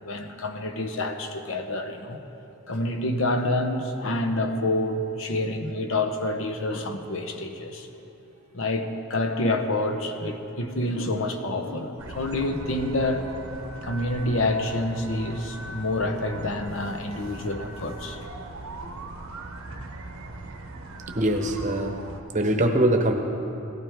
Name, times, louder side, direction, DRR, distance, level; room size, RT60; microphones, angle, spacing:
voice 1, 0.0-2.2 2.7-7.9 8.5-13.3 13.8-18.2 18.8-18.9, left 2 dB, 65° left, 6 dB, 0.9 m, -28 dB
sound 1, 12.0-22.2, right 2 dB, 80° right, 0.9 m, -40 dB
voice 2, 21.2-22.0 22.3-23.1, right 1 dB, 35° right, 4 dB, 0.9 m, -22 dB
17.5 x 12.5 x 3.6 m, 3.0 s
head